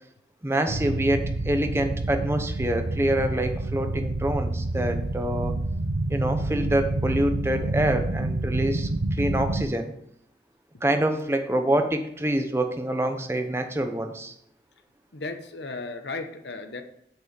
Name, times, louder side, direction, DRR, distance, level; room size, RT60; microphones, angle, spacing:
voice 1, 0.4-5.5 6.1-9.9 10.8-14.3, right 1 dB, 15° right, 6 dB, 0.7 m, -26 dB
sound 1, 0.7-9.7, right 2 dB, 75° right, 0.8 m, -28 dB
voice 2, 15.1-16.8, left 3 dB, 80° left, 7 dB, 0.9 m, -35 dB
7.9 x 4.7 x 6.8 m, 0.72 s
head